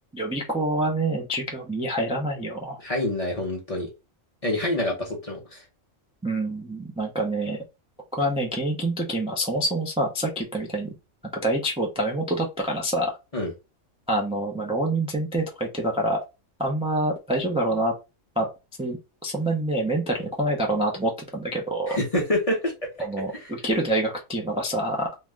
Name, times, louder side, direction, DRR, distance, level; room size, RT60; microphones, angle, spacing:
voice 1, 0.1-2.8 6.2-7.6 8.1-10.9 11.4-13.1 14.1-16.2 16.6-17.9 18.4-18.5 18.8-22.0 23.0-25.1, right 1 dB, 10° right, 0.3 m, -26 dB
voice 2, 2.8-3.9 4.4-5.6 13.3-13.5 21.9-23.1 23.3-23.5, left 1 dB, 35° left, 0.6 m, -27 dB
2.7 x 2.1 x 3.4 m
omnidirectional pair, 1.4 m